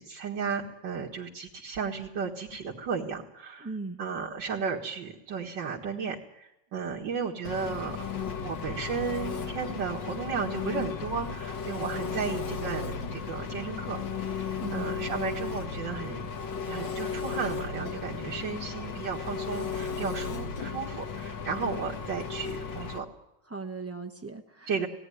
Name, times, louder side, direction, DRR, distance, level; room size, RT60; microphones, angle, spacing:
voice 1, 0.0-3.7 4.0-8.0 8.4-16.3 16.7-23.1 24.7-24.9, right 5 dB, 80° right, -5 dB, 2.4 m, -34 dB
voice 2, 3.6-4.0 14.6-15.1 23.5-24.7, right 3 dB, 15° right, 4 dB, 0.4 m, -38 dB
Engine, 7.4-23.0, left 6 dB, 80° left, 2.0 m, -35 dB
19.0 x 17.0 x 10.0 m, 0.90 s
omnidirectional pair, 1.9 m